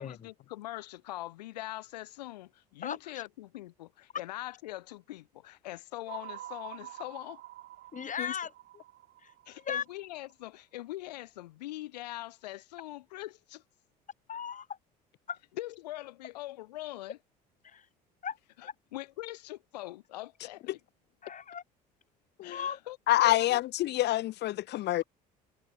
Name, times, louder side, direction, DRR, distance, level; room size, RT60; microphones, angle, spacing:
voice 1, 0.0-7.4 9.5-13.6 15.6-17.2 18.6-20.8 22.4-23.6, left 16 dB, 75° left, 2.5 m, -42 dB
sound 1, 6.1-10.3, right 15 dB, 55° right, 3.3 m, -47 dB
voice 2, 7.9-8.8 9.2-9.3 9.6-9.8 14.3-14.7 15.3-15.4 17.6-17.9 18.2-18.4 18.6-18.7 21.2-21.6 22.5-22.8, left 7 dB, 35° left, 5.9 m, -37 dB
voice 3, 23.1-25.0, left 15 dB, 55° left, 1.6 m, -27 dB
figure-of-eight pair, 60°, 21 cm